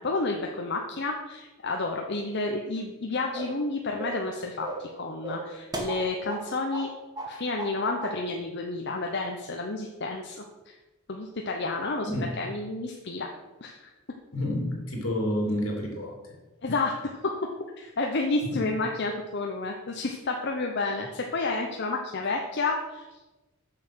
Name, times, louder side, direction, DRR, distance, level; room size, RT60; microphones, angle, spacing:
voice 1, 0.0-6.9 7.3-10.7 11.1-12.1 12.4-13.3 13.6-13.9 16.6-17.3 17.8-23.1, left 3 dB, 55° left, 2 dB, 0.8 m, -30 dB
sound 1, 3.3-3.6 4.0-4.3 4.6-4.9 5.2-6.5 6.7-6.9 7.2-7.8 8.0-8.2, right 1 dB, 20° right, 1.3 m, -35 dB
voice 2, 14.3-16.2 18.5-18.7, left 1 dB, 75° left, 0 dB, 2.9 m, -29 dB
7.4 x 6.7 x 6.2 m, 1.1 s
head